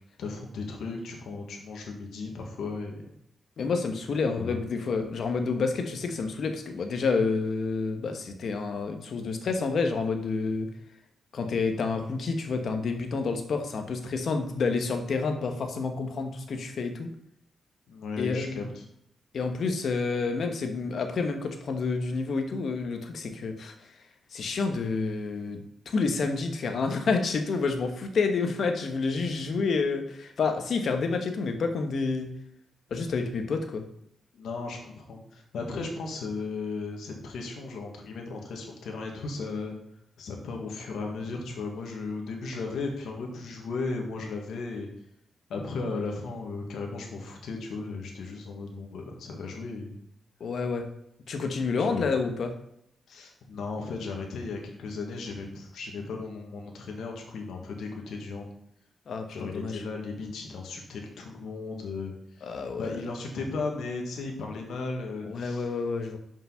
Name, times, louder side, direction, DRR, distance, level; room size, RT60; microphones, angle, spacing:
voice 1, 0.2-3.1 4.4-4.6 17.9-18.8 34.3-39.8 40.2-44.9 45.5-50.0 51.8-52.1 53.1-58.5 59.3-62.1 62.4-62.5 62.8-65.7, left 3 dB, 85° left, 1 dB, 1.5 m, -36 dB
voice 2, 3.6-10.7 11.3-17.1 18.2-18.6 19.3-23.7 24.3-25.6 25.9-32.3 32.9-33.8 50.4-50.8 51.3-52.5 59.1-59.8 62.4-62.9 65.2-66.2, left 4 dB, 65° left, 5 dB, 1.1 m, -29 dB
5.8 x 5.5 x 5.7 m, 0.74 s
cardioid pair, 90°, 0 cm